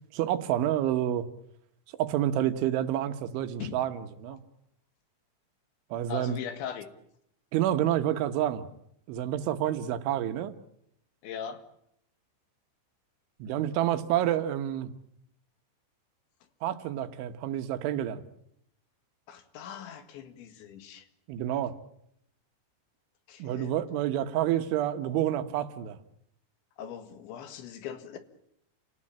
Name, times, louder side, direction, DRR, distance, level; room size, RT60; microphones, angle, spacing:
voice 1, 0.1-1.3 2.0-4.4 5.9-6.4 7.5-8.7 9.1-10.5 13.4-14.9 16.6-18.2 21.3-21.8 23.4-26.0, right 11 dB, 85° right, 10 dB, 3.6 m, -28 dB
voice 2, 6.1-6.9 11.2-11.6 19.3-21.1 23.3-23.7 26.8-28.2, left 8 dB, 75° left, 9 dB, 4.0 m, -40 dB
29.5 x 18.0 x 8.8 m, 0.73 s
omnidirectional pair, 5.4 m